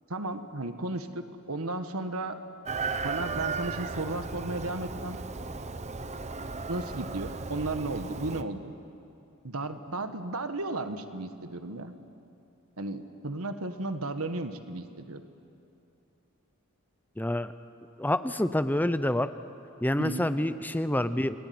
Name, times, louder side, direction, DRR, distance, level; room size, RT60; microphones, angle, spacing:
voice 1, 0.1-2.4 3.0-5.2 6.7-8.8 9.4-11.9 12.8-15.2 20.0-20.3, right 2 dB, 75° right, 8 dB, 1.6 m, -34 dB
Chicken rooster, 2.7-8.4, right 4 dB, 30° right, 0.9 m, -35 dB
voice 2, 17.2-17.5 18.0-19.3 19.8-21.4, left 1 dB, 10° left, 12 dB, 0.6 m, -27 dB
29.0 x 21.0 x 9.6 m, 2.7 s
head